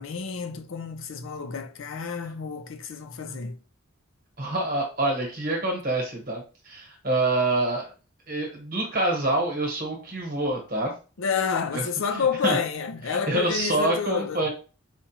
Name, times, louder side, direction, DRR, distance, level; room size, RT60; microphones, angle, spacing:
voice 1, 0.0-3.6 11.2-14.5, left 6 dB, 70° left, 0.5 m, -29 dB
voice 2, 4.4-7.9 8.3-10.9 11.7-11.8 12.1-12.6 13.3-14.5, right 2 dB, 40° right, 1.2 m, -26 dB
4.3 x 2.4 x 2.9 m
head